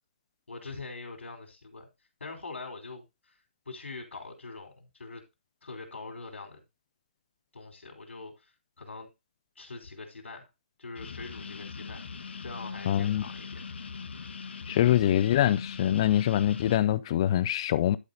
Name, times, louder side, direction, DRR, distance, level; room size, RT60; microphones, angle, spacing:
voice 1, 0.5-1.9 2.2-3.3 3.6-5.2 5.6-6.6 7.5-8.3 8.8-9.1 9.6-10.5 10.8-12.0 12.4-13.5 14.6-14.8, left 3 dB, 90° left, 3.4 m, -43 dB
sound 1, 10.9-16.8, left 5 dB, 70° left, 1.3 m, -41 dB
voice 2, 12.9-13.2 14.7-18.0, left 12 dB, 25° left, 0.4 m, -24 dB
11.5 x 4.1 x 3.9 m
hypercardioid pair, 165°, 6 cm